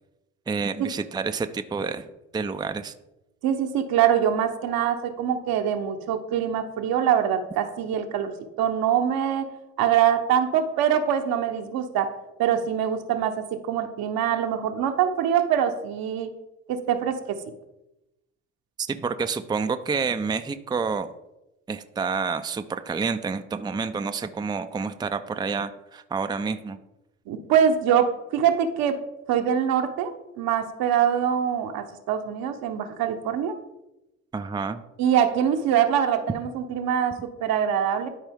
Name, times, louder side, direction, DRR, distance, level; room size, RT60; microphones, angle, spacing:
voice 1, 0.5-2.1 2.3-2.9 18.9-21.1 21.7-26.8 34.3-34.8, right 5 dB, 10° right, 8 dB, 0.5 m, -28 dB
voice 2, 3.4-9.5 9.8-12.1 12.4-16.3 16.7-17.4 27.3-29.0 29.3-33.5 35.0-38.1, right 9 dB, 65° right, 6 dB, 1.0 m, -24 dB
12.5 x 4.4 x 3.6 m, 0.95 s
hypercardioid pair, 55°, 37 cm